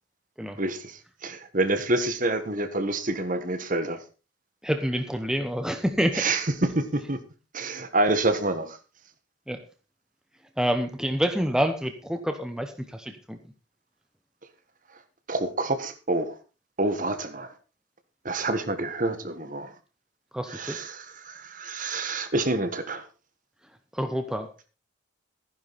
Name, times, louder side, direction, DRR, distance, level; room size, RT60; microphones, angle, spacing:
voice 1, 0.6-4.0 6.1-7.2 7.5-8.8 15.3-16.4 16.8-17.5 18.2-19.7 20.5-23.0, right 2 dB, 40° right, 10 dB, 1.6 m, -27 dB
voice 2, 4.6-6.2 9.5-9.6 10.6-13.4 20.3-20.8 23.9-24.7, equal, 5° right, 7 dB, 1.0 m, -27 dB
14.5 x 10.5 x 4.2 m, 0.33 s
head